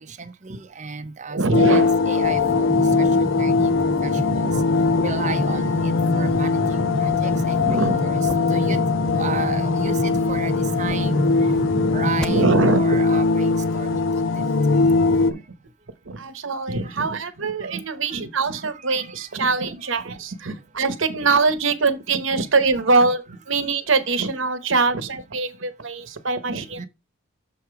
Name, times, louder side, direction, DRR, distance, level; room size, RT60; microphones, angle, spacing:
voice 1, 0.0-1.4 1.7-4.5 5.0-8.8 9.1-11.5 11.9-14.5 16.8-16.9 17.6-17.8 18.5-20.1 22.7-22.8 26.8-26.9, right 5 dB, 35° right, 0.6 m, -35 dB
voice 2, 1.3-1.9 4.4-4.5 5.0-5.1 7.3-8.0 8.6-8.8 9.4-9.5 11.6-11.9 12.3-13.0 14.4-15.4 16.0-26.9, right 3 dB, 65° right, 1.0 m, -23 dB
sound 1, 1.5-15.3, left 4 dB, 65° left, 0.5 m, -21 dB
sound 2, 2.2-12.2, equal, 5° left, 0.4 m, -29 dB
sound 3, 6.2-14.1, left 3 dB, 90° left, 2.4 m, -45 dB
6.8 x 5.1 x 4.6 m
head